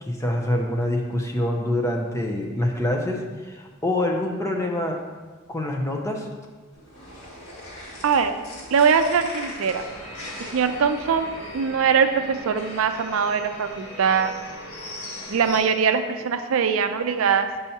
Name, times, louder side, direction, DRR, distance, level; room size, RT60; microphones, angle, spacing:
voice 1, 0.0-5.0 5.5-6.3, left 1 dB, 15° left, 1 dB, 0.5 m, -25 dB
sound 1, 6.7-11.7, left 1 dB, 65° left, 1.8 m, -41 dB
voice 2, 8.0-8.3 8.7-9.9 10.4-11.3 11.5-14.3 15.3-17.5, right 6 dB, 75° right, 8 dB, 0.4 m, -22 dB
sound 2, 9.6-15.6, left 1 dB, 85° left, 1.2 m, -39 dB
7.0 x 5.4 x 2.8 m, 1.4 s
head